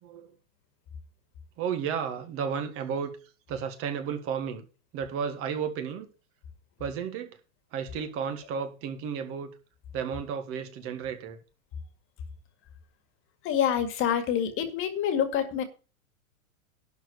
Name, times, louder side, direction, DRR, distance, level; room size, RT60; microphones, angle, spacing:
voice 1, 0.0-0.3 1.6-3.2 3.5-4.6 4.9-6.1 6.8-7.4 7.7-9.5 9.9-11.4, right 7 dB, 30° right, 1.7 m, -33 dB
voice 2, 13.4-15.6, left 9 dB, 30° left, 2.0 m, -26 dB
12.0 x 4.7 x 8.2 m
hypercardioid pair, 140°, 42 cm